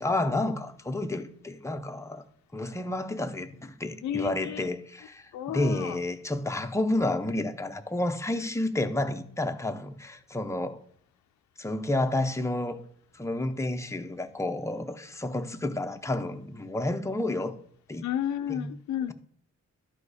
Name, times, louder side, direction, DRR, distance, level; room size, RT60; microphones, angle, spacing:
voice 1, 0.0-2.2 2.5-10.8 11.6-12.8 13.1-17.5 17.9-18.1 18.5-18.7, left 2 dB, 10° left, 0.6 m, -30 dB
voice 2, 4.0-4.7 5.3-6.0 18.0-19.1, left 10 dB, 70° left, 0.5 m, -32 dB
12.0 x 4.8 x 4.8 m
wide cardioid pair, 150°, 29 cm